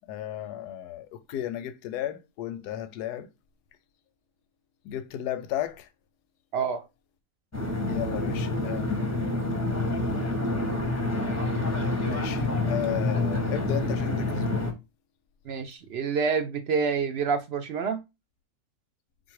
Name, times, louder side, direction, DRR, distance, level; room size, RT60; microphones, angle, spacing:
voice 1, 0.1-3.3 4.8-5.9 7.9-9.3 12.0-14.6, left 11 dB, 85° left, 1.2 m, -34 dB
voice 2, 6.5-6.8 15.5-18.0, right 5 dB, 65° right, 0.6 m, -27 dB
sound 1, 7.5-14.7, left 2 dB, 15° left, 0.7 m, -27 dB
4.0 x 2.6 x 4.6 m
omnidirectional pair, 1.7 m